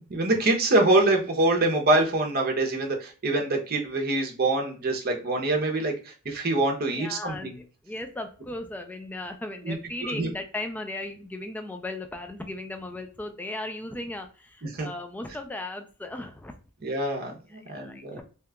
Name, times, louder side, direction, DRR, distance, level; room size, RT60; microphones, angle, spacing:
voice 1, 0.0-7.6 9.7-9.8 10.0-10.3 14.7-14.9 16.8-18.2, right 2 dB, 45° right, 2 dB, 0.7 m, -25 dB
voice 2, 6.9-16.5 17.5-18.2, left 2 dB, 10° left, 5 dB, 0.3 m, -37 dB
2.8 x 2.3 x 3.4 m, 0.36 s
head